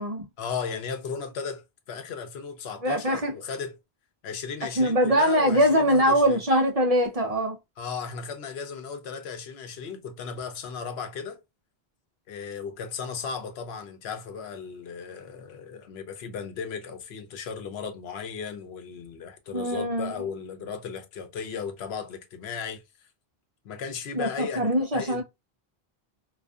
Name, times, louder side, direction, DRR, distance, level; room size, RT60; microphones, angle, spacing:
voice 1, 0.4-3.7 4.2-6.4 7.8-11.4 12.3-22.8 23.6-24.7 24.9-25.2, left 6 dB, 85° left, 0.9 m, -36 dB
voice 2, 2.8-3.3 4.8-7.6 19.5-20.2 24.1-25.2, equal, 45° right, 0.5 m, -23 dB
2.5 x 2.4 x 2.2 m
omnidirectional pair, 1.0 m